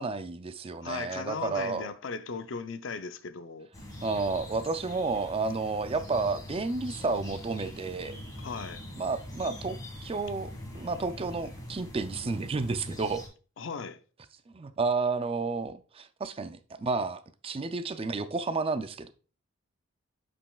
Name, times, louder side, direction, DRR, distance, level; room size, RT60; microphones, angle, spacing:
voice 1, 0.0-1.9 4.0-8.2 9.0-9.8 10.0-13.2 14.5-19.1, right 3 dB, 30° right, 0.4 m, -31 dB
voice 2, 0.8-3.7 8.4-8.8 13.6-14.0, left 5 dB, 65° left, 0.5 m, -37 dB
sound 1, 3.7-13.3, left 1 dB, 20° left, 1.7 m, -43 dB
8.5 x 5.3 x 2.3 m
head